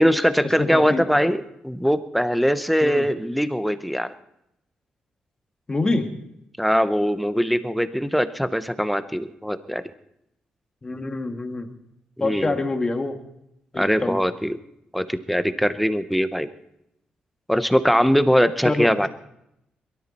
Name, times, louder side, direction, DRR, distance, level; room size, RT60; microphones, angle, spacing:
voice 1, 0.0-4.1 6.6-9.8 12.2-12.6 13.8-14.6 14.9-16.5 17.5-19.1, equal, ahead, 12 dB, 0.7 m, -21 dB
voice 2, 0.6-1.3 2.8-3.1 5.7-6.1 10.8-11.8 12.2-13.2 13.7-14.2 18.6-18.9, left 2 dB, 20° left, 5 dB, 1.5 m, -26 dB
22.5 x 13.0 x 4.2 m, 0.79 s
wide cardioid pair, 135°, 3 cm